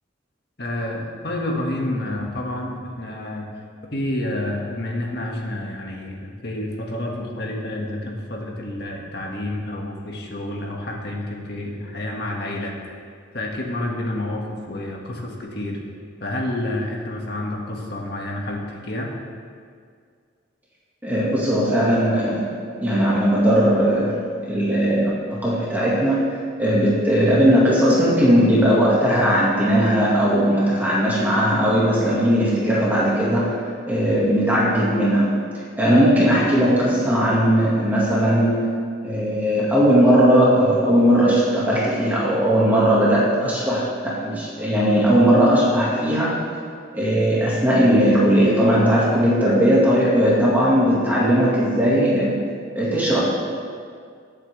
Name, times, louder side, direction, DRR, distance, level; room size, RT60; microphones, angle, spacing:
voice 1, 0.6-3.5 3.9-12.7 13.3-15.8 16.2-19.1, left 1 dB, 60° left, -1 dB, 1.9 m, -29 dB
voice 2, 21.0-22.5 22.8-35.3 35.8-38.7 39.0-46.4 46.9-52.3 52.8-53.2, equal, 10° right, -7 dB, 1.9 m, -18 dB
21.5 x 8.1 x 3.4 m, 2.1 s
head